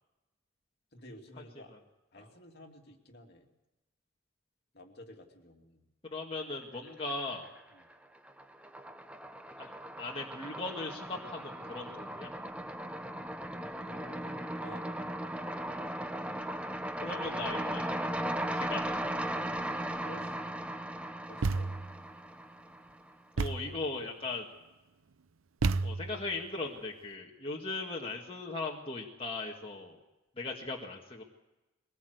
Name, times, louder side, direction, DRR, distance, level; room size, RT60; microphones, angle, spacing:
voice 1, 0.9-1.8 2.1-3.5 4.7-5.8 7.7-7.9 13.8-14.9 20.0-20.4 21.3-21.7 27.4-27.5, left 1 dB, 50° left, 2 dB, 2.7 m, -52 dB
voice 2, 6.0-7.5 9.6-9.7 10.0-12.3 17.0-18.1 18.5-18.8 23.4-24.4 25.8-30.0 30.4-31.2, left 3 dB, 25° left, -2 dB, 1.9 m, -38 dB
sound 1, 6.9-7.6 7.9-23.1, right 1 dB, 5° right, 0.8 m, -37 dB
Thump thud, 21.4-22.0 23.4-23.8 25.6-26.3, right 3 dB, 85° right, 0.6 m, -31 dB
22.5 x 18.5 x 8.0 m, 1.0 s
head